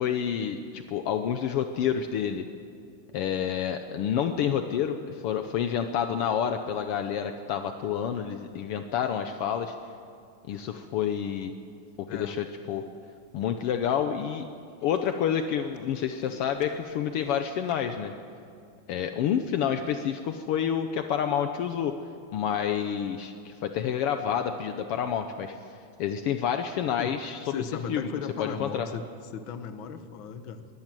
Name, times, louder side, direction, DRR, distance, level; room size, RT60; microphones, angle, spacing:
voice 1, 0.0-2.5 3.1-9.8 10.5-11.5 12.1-12.8 13.3-14.5 14.8-18.1 18.9-22.0 22.3-25.6 26.0-27.5 27.9-28.0 28.4-28.9, left 8 dB, 80° left, 7 dB, 1.3 m, -28 dB
Tools, 11.9-12.3 12.9-13.0 13.2-13.3 13.6-13.8 14.1-14.2 14.5-17.9, left 1 dB, 25° left, 1.7 m, -52 dB
voice 2, 12.1-12.4 27.0-27.2 27.4-29.0 29.3-30.7, left 6 dB, 60° left, 9 dB, 1.3 m, -36 dB
22.5 x 15.5 x 7.5 m, 2.4 s
omnidirectional pair, 3.5 m